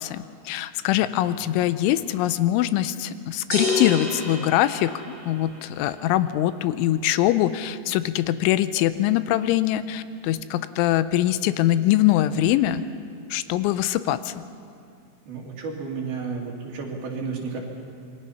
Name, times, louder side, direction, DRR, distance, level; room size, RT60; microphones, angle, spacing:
voice 1, 0.0-12.9 13.3-14.4, left 13 dB, 85° left, 13 dB, 3.1 m, -23 dB
sound 1, 3.5-5.5, left 2 dB, 15° right, 5.4 m, -28 dB
voice 2, 15.3-17.6, right 4 dB, 55° right, -1 dB, 4.1 m, -32 dB
27.0 x 22.5 x 5.7 m, 2.3 s
omnidirectional pair, 5.4 m